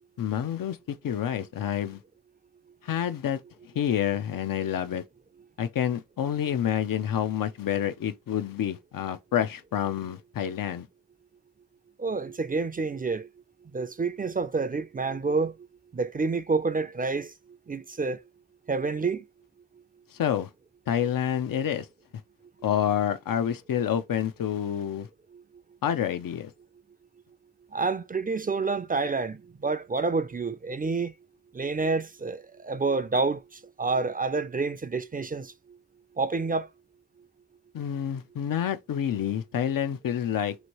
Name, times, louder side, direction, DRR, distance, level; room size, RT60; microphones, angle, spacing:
voice 1, 0.2-2.0 2.8-3.4 3.8-5.0 5.6-10.9 20.1-20.5 20.9-21.9 22.6-25.1 25.8-26.5 37.7-40.6, left 9 dB, 85° left, 0.5 m, -28 dB
voice 2, 12.0-13.3 13.7-15.5 15.9-17.3 17.7-18.2 18.7-19.2 27.7-31.1 31.5-33.4 33.8-35.5 36.2-36.7, right 4 dB, 25° right, 0.3 m, -28 dB
3.0 x 2.6 x 2.9 m
wide cardioid pair, 65°, 33 cm